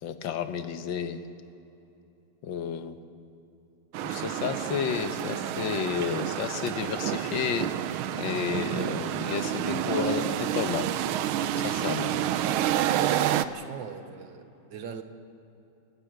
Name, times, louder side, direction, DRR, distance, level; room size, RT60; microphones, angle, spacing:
voice 1, 0.0-1.2 2.4-3.0 4.0-7.7 8.1-10.9 11.6-12.2, left 7 dB, 70° left, 10 dB, 1.7 m, -31 dB
sound 1, 3.9-13.4, right 11 dB, 85° right, 1.5 m, -29 dB
voice 2, 13.3-15.0, right 7 dB, 65° right, 9 dB, 1.7 m, -41 dB
30.0 x 12.0 x 7.9 m, 2.9 s
omnidirectional pair, 2.2 m